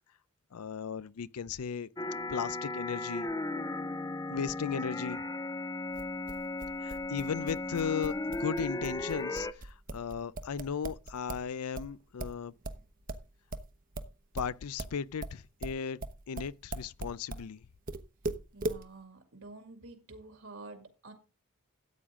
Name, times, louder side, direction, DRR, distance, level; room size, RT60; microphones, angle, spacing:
voice 1, 0.5-1.9 2.3-3.3 4.3-5.2 6.8-12.5 14.3-16.0 16.3-17.6, left 6 dB, 90° left, 0.5 m, -36 dB
sound 1, 2.0-9.5, left 2 dB, 15° left, 0.5 m, -36 dB
sound 2, 5.9-11.5 11.7-17.5 17.9-18.8, right 2 dB, 40° right, 1.0 m, -39 dB
voice 2, 18.5-21.1, right 3 dB, 65° right, 2.2 m, -49 dB
13.5 x 8.8 x 3.7 m
head